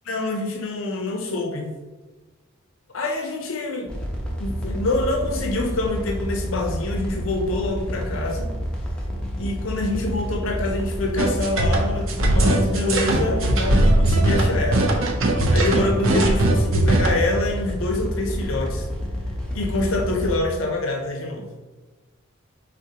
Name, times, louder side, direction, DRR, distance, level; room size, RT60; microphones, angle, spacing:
voice 1, 0.1-1.7 2.9-3.9 4.4-8.5 9.4-14.9 15.5-18.9 19.5-21.5, left 2 dB, 65° left, 2 dB, 0.5 m, -26 dB
sound 1, 3.9-20.4, equal, 5° left, 0.7 m, -29 dB
sound 2, 11.2-17.1, right 1 dB, 70° right, 0.7 m, -19 dB
5.0 x 3.6 x 2.8 m, 1.2 s
head